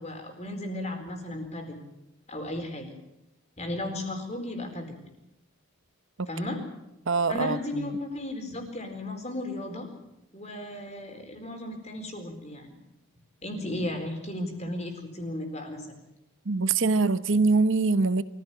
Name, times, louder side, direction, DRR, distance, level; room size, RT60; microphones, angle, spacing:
voice 1, 0.0-1.8 2.3-2.9 3.6-5.0 6.3-6.6 7.3-9.9 10.3-12.8 13.4-16.0, left 1 dB, 30° left, 4 dB, 4.3 m, -35 dB
voice 2, 7.1-8.0 16.4-18.2, right 3 dB, 55° right, 14 dB, 0.9 m, -24 dB
24.0 x 15.5 x 9.1 m, 0.89 s
head